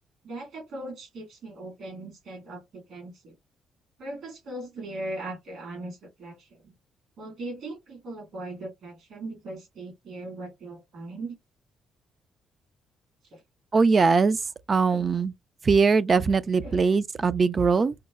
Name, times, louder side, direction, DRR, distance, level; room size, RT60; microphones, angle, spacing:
voice 1, 0.2-3.3 4.0-6.7 7.2-11.4 13.3-13.4 14.9-15.1 16.6-16.8, right 2 dB, 70° right, 2.0 m, -39 dB
voice 2, 13.7-14.4 14.7-15.3 15.7-17.9, right 4 dB, 40° right, 0.4 m, -21 dB
5.6 x 2.1 x 2.3 m
cardioid pair, 90°, 0 cm